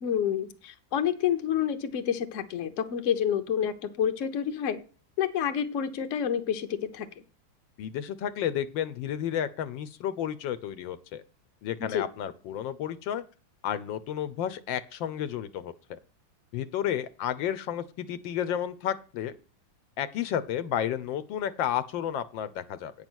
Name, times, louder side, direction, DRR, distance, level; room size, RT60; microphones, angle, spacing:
voice 1, 0.0-4.8 5.2-7.2 11.8-12.1, left 9 dB, 50° left, 1.0 m, -29 dB
voice 2, 7.8-11.2 11.6-13.2 13.6-16.0 16.5-19.3 20.0-22.9, left 10 dB, 80° left, 1.3 m, -32 dB
9.0 x 5.7 x 6.2 m
omnidirectional pair, 2.1 m